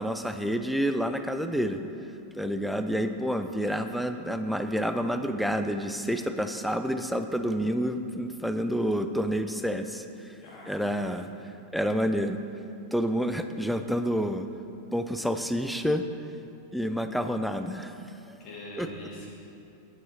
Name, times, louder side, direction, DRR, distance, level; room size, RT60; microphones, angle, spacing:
voice 1, 0.0-1.8 2.4-10.1 10.7-11.3 11.7-12.4 12.9-14.5 14.9-16.0 16.7-18.0 18.3-18.4 18.8-18.9, equal, ahead, 8 dB, 0.4 m, -28 dB
voice 2, 10.4-11.1 18.4-19.3, left 1 dB, 35° left, -4 dB, 2.2 m, -44 dB
9.3 x 7.4 x 4.2 m, 2.7 s
figure-of-eight pair, 90°, 0 cm